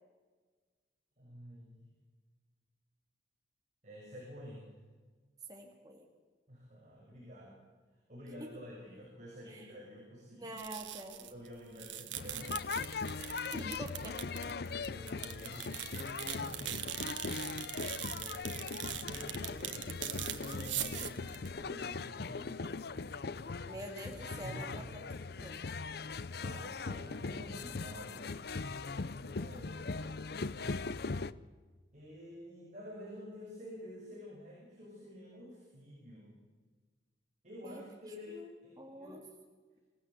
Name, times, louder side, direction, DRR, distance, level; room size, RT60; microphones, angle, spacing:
voice 1, 1.2-1.8 3.8-4.7 6.5-7.6 7.9-10.5 11.1-12.8 14.6-16.9 17.8-18.7 18.9-22.8 24.4-24.8 26.4-28.3 29.2-30.2 31.9-36.4 37.4-39.2, equal, 40° right, -4 dB, 7.2 m, -50 dB
voice 2, 5.5-6.0 8.4-8.5 9.5-9.8 10.4-11.3 13.5-14.4 23.7-25.0 25.3-25.6 37.6-37.8 38.3-39.2, right 1 dB, 20° right, 1 dB, 2.2 m, -46 dB
sound 1, 10.6-11.5 11.7-22.0, right 11 dB, 85° right, 1.6 m, -42 dB
sound 2, 12.1-31.3, left 4 dB, 60° left, 0.6 m, -40 dB
27.0 x 16.0 x 8.0 m, 1.4 s
head